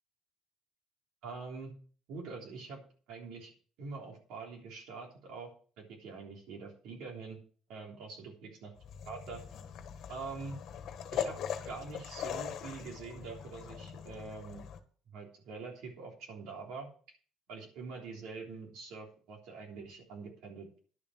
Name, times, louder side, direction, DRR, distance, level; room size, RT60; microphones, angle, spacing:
voice 1, 1.2-1.7 2.1-2.8 3.1-3.5 3.8-5.5 5.8-7.4 7.7-8.7 9.1-9.4 10.1-10.6 11.1-11.4 11.7-14.7 15.1-16.9 17.5-20.8, right 4 dB, 70° right, 0 dB, 3.4 m, -44 dB
sound 1, 8.8-14.8, left 8 dB, 50° left, 1.5 m, -41 dB
11.0 x 7.3 x 6.2 m, 0.42 s
cardioid pair, 165°, 0 cm